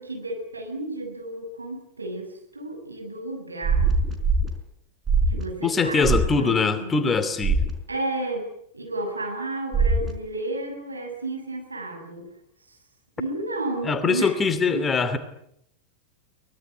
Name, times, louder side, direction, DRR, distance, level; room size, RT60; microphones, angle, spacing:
voice 1, 0.0-3.9 5.3-7.0 7.9-12.3 13.2-14.4 14.7-14.9, right 2 dB, 80° right, 3 dB, 7.3 m, -32 dB
sound 1, 3.6-4.5 5.1-5.4 6.0-6.3 7.4-7.7 9.7-10.1, right 3 dB, 15° right, 4.9 m, -21 dB
voice 2, 5.6-7.6 13.8-15.2, left 4 dB, 20° left, 11 dB, 2.7 m, -22 dB
23.5 x 20.5 x 9.3 m, 0.72 s
figure-of-eight pair, 90°, 0 cm